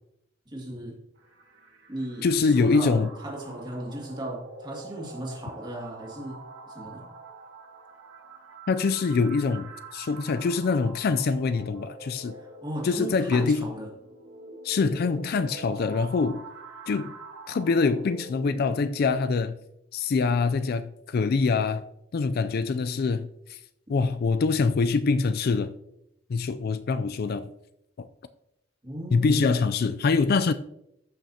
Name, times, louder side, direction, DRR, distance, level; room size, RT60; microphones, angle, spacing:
voice 1, 0.5-1.0 1.9-6.4 6.7-7.1 12.3-13.9 28.8-29.4, right 1 dB, 25° right, 2.3 m, -36 dB
sound 1, 1.2-19.1, right 3 dB, 80° right, 1.5 m, -45 dB
voice 2, 2.2-3.1 8.7-12.4 12.8-13.7 14.6-16.4 16.9-17.2 17.5-19.6 19.9-21.8 22.1-23.6 23.9-25.7 26.3-27.5 28.0-28.1 29.1-30.5, left 4 dB, 50° left, 0.4 m, -24 dB
14.0 x 6.0 x 2.8 m
head